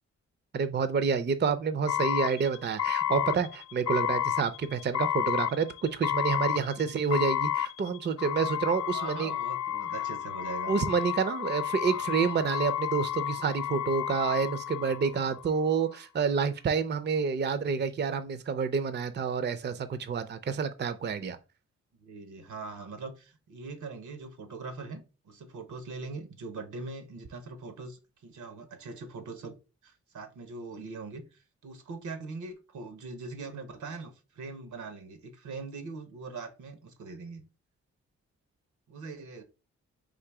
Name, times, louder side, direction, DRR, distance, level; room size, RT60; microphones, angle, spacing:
voice 1, 0.5-9.3 10.7-21.4, right 5 dB, 35° right, 0.5 m, -28 dB
sound 1, 1.9-15.5, left 11 dB, 65° left, 0.5 m, -31 dB
voice 2, 8.9-10.7 11.9-12.2 22.0-29.6 29.8-37.4 38.9-39.4, right 3 dB, 85° right, 0.9 m, -42 dB
3.8 x 2.6 x 4.6 m
cardioid pair, 65°, 29 cm